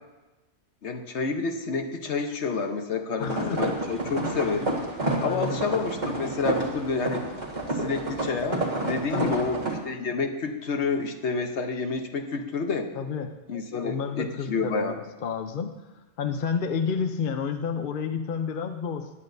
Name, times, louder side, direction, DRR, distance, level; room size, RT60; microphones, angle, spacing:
voice 1, 0.8-4.7 5.2-7.2 7.7-12.9 13.5-15.0, left 4 dB, 70° left, 5 dB, 1.2 m, -29 dB
voice 2, 3.2-3.6 4.4-4.6 5.2-5.6 9.1-9.5 12.9-13.3 13.8-15.8 16.2-19.1, left 6 dB, 50° left, 6 dB, 0.8 m, -30 dB
sound 1, 3.2-9.8, right 2 dB, 40° right, 1.9 m, -30 dB
17.0 x 11.0 x 2.7 m, 1.1 s
omnidirectional pair, 1.2 m